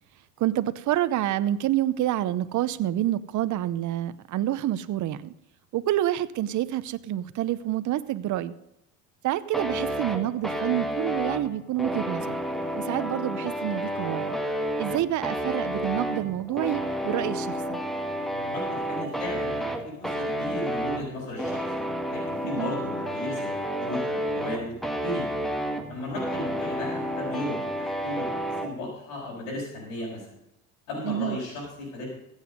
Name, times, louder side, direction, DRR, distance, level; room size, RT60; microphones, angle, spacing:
voice 1, 0.4-5.3 5.7-8.5 9.2-12.4 12.7-14.4 14.8-17.8 22.6-22.7 31.0-31.4, right 13 dB, 45° right, 14 dB, 0.8 m, -28 dB
sound 1, 9.5-28.7, equal, ahead, 1.8 m, -30 dB
voice 2, 18.3-21.6 22.1-24.7 25.0-25.3 25.9-28.3 28.6-30.4 30.9-32.1, left 1 dB, 85° left, -6 dB, 5.5 m, -35 dB
15.0 x 8.3 x 5.2 m, 0.84 s
supercardioid pair, 85°, 40 cm